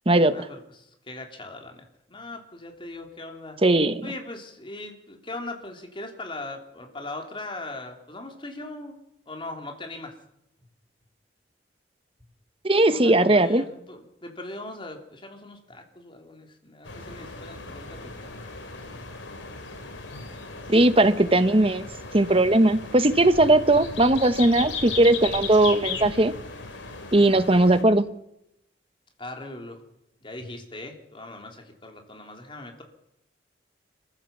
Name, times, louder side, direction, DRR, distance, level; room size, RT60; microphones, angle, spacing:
voice 1, 0.2-3.6 4.0-10.2 12.9-18.3 27.1-27.4 29.2-29.8 30.2-32.8, left 2 dB, 25° left, 3 dB, 3.5 m, -40 dB
voice 2, 3.6-4.0 12.6-13.6 20.7-21.8 22.1-26.3 27.1-28.1, right 2 dB, 30° right, 11 dB, 1.1 m, -19 dB
sound 1, 16.8-27.8, left 4 dB, 80° left, 3.2 m, -37 dB
27.5 x 15.0 x 7.3 m, 0.84 s
head